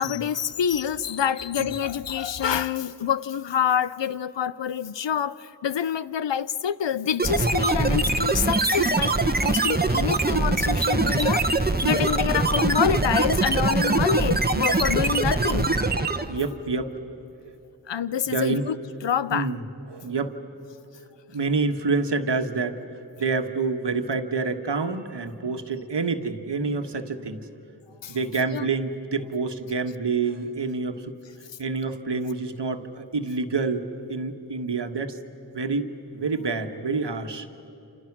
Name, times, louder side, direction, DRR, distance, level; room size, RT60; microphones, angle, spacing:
voice 1, 0.0-15.8 16.4-16.5 17.9-18.8 19.0-19.5 28.0-28.7, left 8 dB, 80° left, 0.7 m, -27 dB
sound 1, 7.2-16.4, right 2 dB, 20° right, 1.3 m, -23 dB
voice 2, 16.2-16.9 18.3-18.7 19.3-19.6 19.9-20.3 21.3-22.8 23.2-27.4 28.1-31.0 31.6-35.2 35.5-35.9 36.1-37.5, right 4 dB, 70° right, 1.5 m, -27 dB
28.5 x 28.0 x 6.1 m
cardioid pair, 40°, 43 cm